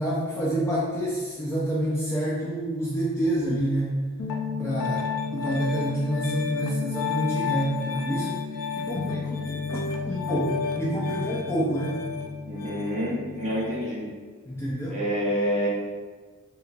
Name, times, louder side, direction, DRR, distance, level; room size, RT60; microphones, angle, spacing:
voice 1, 0.0-3.9 4.6-8.4 8.8-9.6 10.1-12.0 14.5-15.0, right 1 dB, 10° left, -6 dB, 0.3 m, -28 dB
Piano, 4.2-13.9, left 5 dB, 85° left, 0.4 m, -31 dB
voice 2, 12.4-14.1 14.9-15.7, equal, 30° right, -7 dB, 0.8 m, -28 dB
3.3 x 3.0 x 2.4 m, 1.5 s
head